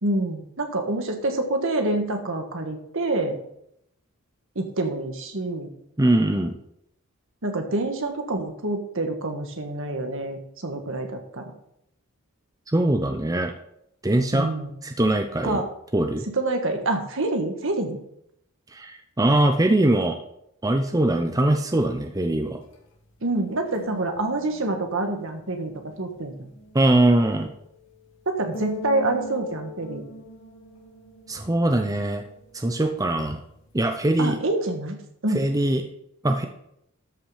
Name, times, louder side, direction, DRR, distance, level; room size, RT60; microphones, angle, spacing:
voice 1, 0.0-3.4 4.6-5.7 7.4-11.5 14.3-14.8 15.4-15.6 16.3-18.0 23.2-25.7 26.0-26.5 28.3-30.0 34.2-35.4, right 2 dB, 65° right, 5 dB, 1.7 m, -27 dB
voice 2, 6.0-6.5 12.7-13.5 14.0-14.5 14.8-15.6 15.9-16.3 18.7-20.2 20.6-22.6 26.7-27.5 31.3-32.2 32.5-33.4 33.7-34.4 35.3-35.8 36.2-36.4, right 1 dB, 15° right, 5 dB, 0.7 m, -22 dB
sound 1, 21.6-34.2, left 1 dB, 60° left, 2.0 m, -43 dB
13.0 x 5.8 x 5.0 m, 0.75 s
head